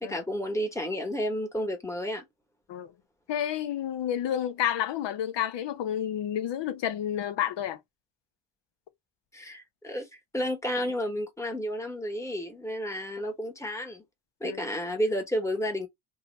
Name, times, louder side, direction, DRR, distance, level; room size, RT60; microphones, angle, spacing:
voice 1, 0.0-2.2 9.3-14.0 14.4-15.9, equal, 5° left, 1.1 m, -31 dB
voice 2, 3.3-7.8 14.4-14.6, left 10 dB, 70° left, 0.7 m, -30 dB
2.8 x 2.3 x 4.0 m
cardioid pair, 120°, 44 cm